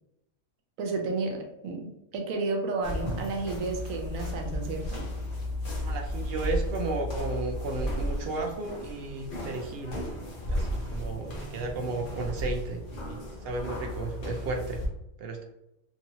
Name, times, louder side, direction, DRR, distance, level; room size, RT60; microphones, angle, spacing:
voice 1, 0.8-5.0, right 3 dB, 85° right, 2 dB, 1.1 m, -32 dB
sound 1, 2.8-14.9, left 1 dB, 45° left, 0.9 m, -34 dB
voice 2, 5.8-10.0 10.5-14.8 15.2-15.4, right 3 dB, 65° right, 2 dB, 0.6 m, -34 dB
3.0 x 2.7 x 2.8 m, 0.86 s
omnidirectional pair, 1.4 m